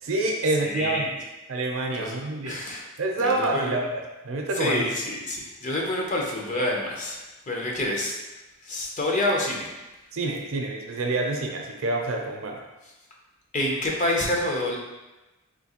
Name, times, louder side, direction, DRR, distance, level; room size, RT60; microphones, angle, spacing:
voice 1, 0.0-1.1 1.5-2.6 3.0-4.8 10.1-12.6, right 2 dB, 70° right, 1 dB, 0.6 m, -27 dB
voice 2, 0.6-1.1 1.9-2.2 2.5-2.8 3.2-3.8 4.5-8.2 8.6-9.7 13.5-14.8, left 1 dB, 35° left, -1 dB, 0.6 m, -27 dB
3.7 x 2.7 x 2.9 m, 1.1 s
head